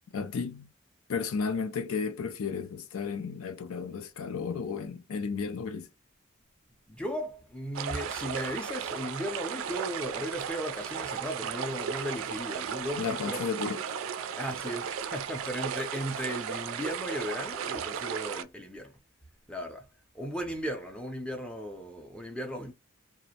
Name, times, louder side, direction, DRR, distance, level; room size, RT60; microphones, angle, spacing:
voice 1, 0.1-0.7 1.1-5.9 13.0-13.8, left 5 dB, 85° left, 0.4 m, -33 dB
voice 2, 6.9-13.4 14.4-19.0 19.5-19.9 20.1-22.7, equal, 5° left, 0.4 m, -36 dB
sound 1, 7.7-18.4, right 7 dB, 75° right, 0.3 m, -35 dB
2.4 x 2.0 x 2.7 m
head